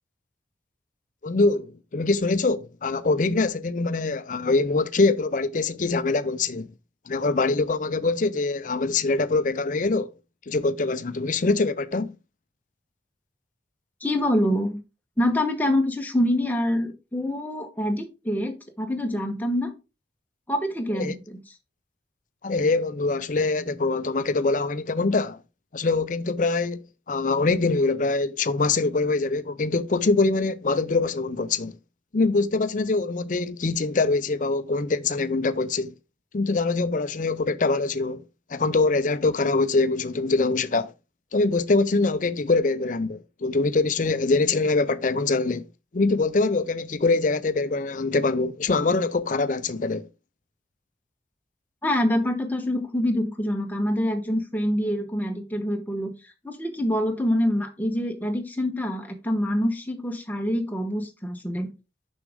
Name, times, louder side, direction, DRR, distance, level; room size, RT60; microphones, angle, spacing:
voice 1, 1.2-6.7 7.1-10.1 10.5-12.1 20.9-21.1 22.4-25.4 25.7-31.7 32.1-35.9 36.3-38.2 38.5-40.9 41.3-45.6 45.9-50.1, left 3 dB, 45° left, 0.5 m, -24 dB
voice 2, 14.0-14.8 15.2-19.7 20.5-21.4 51.8-61.7, left 1 dB, 10° left, 1.1 m, -26 dB
6.7 x 6.2 x 3.5 m
head